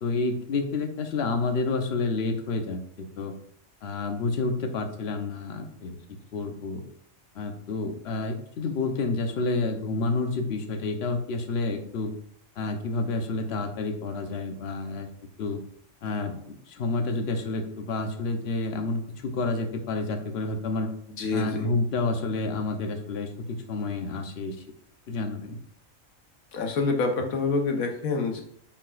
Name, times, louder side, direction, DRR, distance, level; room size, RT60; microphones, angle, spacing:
voice 1, 0.0-3.3 3.8-6.0 6.3-6.8 7.3-12.1 12.6-15.1 15.4-15.6 16.0-20.9 21.3-24.6 25.1-25.6, left 3 dB, 55° left, 6 dB, 1.0 m, -29 dB
voice 2, 21.2-21.7 26.5-28.4, left 3 dB, 90° left, 4 dB, 1.4 m, -27 dB
8.9 x 4.7 x 2.4 m, 0.65 s
omnidirectional pair, 1.4 m